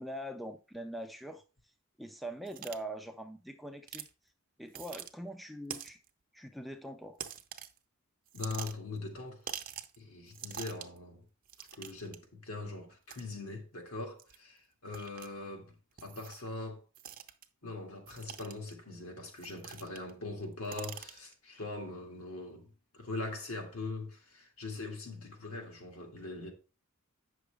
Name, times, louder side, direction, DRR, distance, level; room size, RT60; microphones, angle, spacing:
voice 1, 0.0-1.4 2.0-4.1 4.6-6.0 6.3-7.2, right 1 dB, ahead, 0.4 m, -43 dB
sound 1, 2.5-2.8 3.9-4.1 4.7-5.1 5.7-6.1 7.2-7.8 8.3-9.0 9.5-10.0 10.3-11.0 11.5-12.2 13.1-13.2 14.2-14.4 14.9-15.3 16.0-16.5 16.9-17.4 18.1-18.7 19.4-20.1 20.4-21.3, right 9 dB, 40° right, 0.6 m, -44 dB
voice 2, 8.3-9.4 10.0-11.2 11.6-15.7 16.0-16.8 17.6-26.5, left 3 dB, 70° left, 2.2 m, -42 dB
8.6 x 6.2 x 3.4 m
head